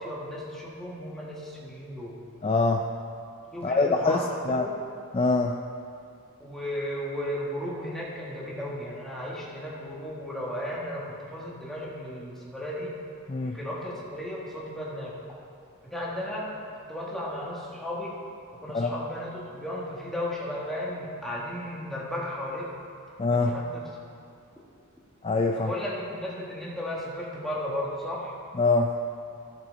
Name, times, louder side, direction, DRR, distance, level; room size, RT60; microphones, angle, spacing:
voice 1, 0.0-2.1 3.5-4.7 6.4-12.9 13.4-15.1 15.8-16.5 16.9-18.1 18.6-22.7 23.3-23.8 25.6-28.4, left 1 dB, ahead, -6 dB, 1.9 m, -35 dB
voice 2, 2.4-2.8 3.6-4.7 5.1-5.6 13.3-13.6 18.7-18.9 23.2-23.5 25.2-25.7 28.5-28.9, left 3 dB, 25° left, 2 dB, 0.4 m, -24 dB
17.0 x 6.0 x 4.0 m, 2.5 s
head